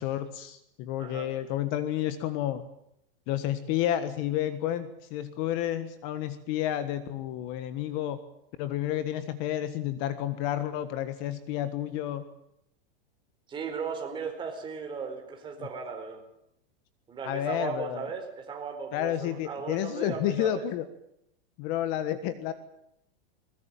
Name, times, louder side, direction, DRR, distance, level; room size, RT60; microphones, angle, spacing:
voice 1, 0.0-2.6 3.3-8.2 8.6-12.2 15.6-15.7 17.2-18.1 18.9-20.8 21.6-22.5, left 12 dB, 35° left, 12 dB, 1.6 m, -30 dB
voice 2, 13.5-16.2 17.1-20.6, right 5 dB, 15° right, 3 dB, 4.5 m, -36 dB
22.0 x 21.0 x 9.1 m, 0.78 s
supercardioid pair, 160°, 30 cm